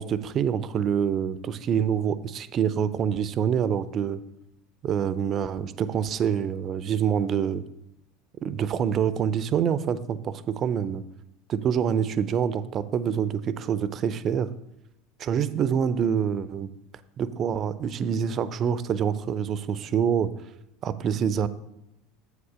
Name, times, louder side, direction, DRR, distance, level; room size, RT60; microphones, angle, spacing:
voice 1, 0.0-4.2 4.8-7.6 8.4-11.0 11.5-14.5 15.2-16.7 17.2-20.3 20.8-21.5, right 8 dB, 40° right, 15 dB, 0.4 m, -26 dB
7.9 x 5.2 x 4.9 m, 0.87 s
hypercardioid pair, 75°, 0 cm